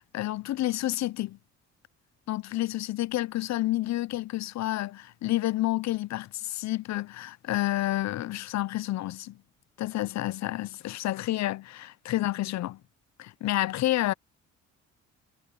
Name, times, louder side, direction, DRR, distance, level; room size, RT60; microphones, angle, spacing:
voice 1, 0.0-1.4 2.3-9.4 9.8-12.8 13.2-14.1, left 16 dB, 65° left, 0.6 m, -29 dB
cardioid pair, 90°, 30 cm